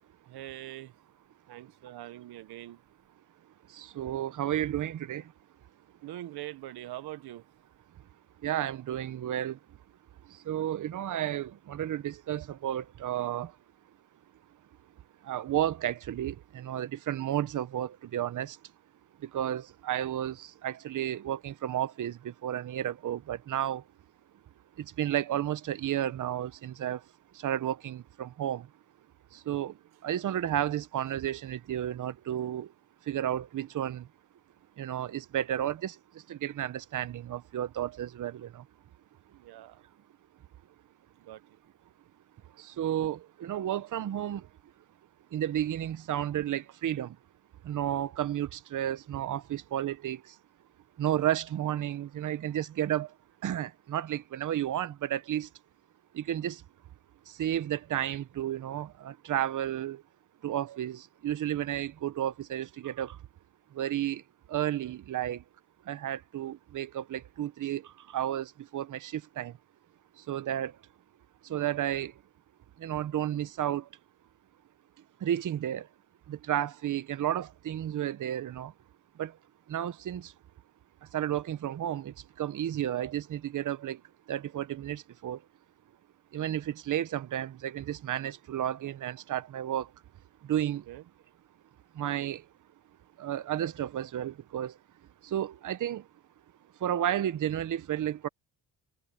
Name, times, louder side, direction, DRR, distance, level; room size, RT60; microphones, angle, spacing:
voice 1, 0.2-0.9 1.5-2.8 6.0-7.5 19.3-19.6 39.3-39.8 41.2-41.6 90.9-91.0, right 15 dB, 85° right, 0.9 m, -43 dB
voice 2, 3.7-5.3 8.4-9.6 10.2-13.6 15.2-18.6 19.2-23.8 24.8-27.1 27.3-28.7 29.3-32.7 33.0-34.1 34.8-38.7 42.5-44.5 45.3-47.2 47.6-50.4 51.0-53.1 53.4-55.5 56.1-56.6 57.3-60.0 60.4-63.2 63.7-64.2 64.5-65.4 65.8-69.6 70.2-70.8 71.4-72.2 72.8-73.9 75.2-75.9 76.3-78.7 79.2-79.4 79.7-80.3 81.0-84.0 84.3-85.4 86.3-89.9 90.4-90.9 91.9-92.5 93.2-94.8 95.2-96.1 96.8-98.3, right 11 dB, 55° right, 0.9 m, -32 dB
cardioid pair, 115°, 37 cm